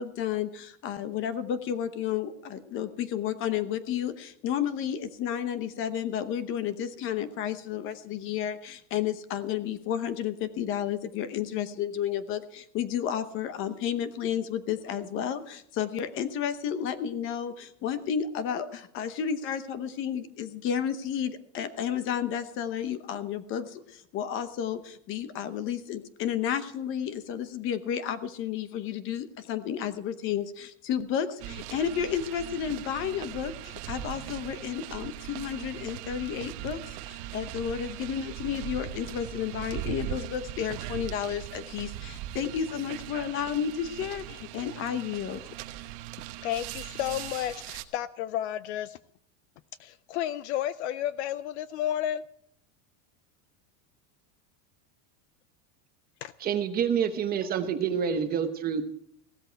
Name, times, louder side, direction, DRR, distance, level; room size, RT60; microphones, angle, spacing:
voice 1, 0.0-45.4, left 9 dB, 25° left, 0.9 m, -32 dB
sound 1, 31.4-47.8, right 13 dB, 45° right, 1.0 m, -40 dB
voice 2, 46.4-49.0 49.8-52.2 56.2-56.3, left 12 dB, 50° left, 0.5 m, -32 dB
voice 3, 56.4-58.8, right 7 dB, 20° right, 0.9 m, -27 dB
16.0 x 13.5 x 4.5 m
supercardioid pair, 180°, 45 cm